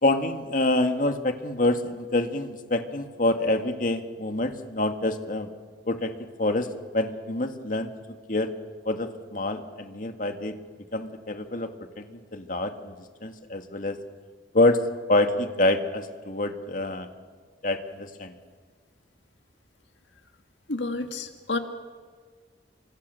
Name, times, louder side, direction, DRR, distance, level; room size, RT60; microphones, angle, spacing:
voice 1, 0.0-5.5 5.9-6.1 6.4-6.7 6.9-7.9 8.3-8.5 8.9-10.6 10.9-11.7 12.0-12.9 13.2-14.0 14.5-14.8 15.1-17.1 17.6-18.3, left 2 dB, 50° left, 7 dB, 1.9 m, -26 dB
voice 2, 20.7-21.6, left 3 dB, 90° left, 6 dB, 1.9 m, -30 dB
29.0 x 25.0 x 6.9 m, 1.5 s
head